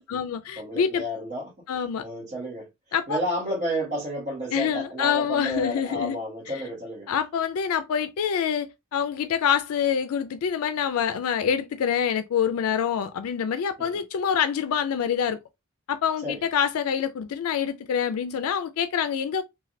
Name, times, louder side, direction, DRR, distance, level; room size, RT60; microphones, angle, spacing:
voice 1, 0.0-1.0 1.7-2.0 2.9-3.2 4.5-6.2 6.5-6.6 7.1-15.4 15.9-19.4, left 7 dB, 80° left, 0.3 m, -26 dB
voice 2, 0.6-1.5 2.0-2.7 3.1-7.1 13.8-13.9 16.2-16.4, equal, 35° right, 1.0 m, -31 dB
3.1 x 2.3 x 2.5 m
head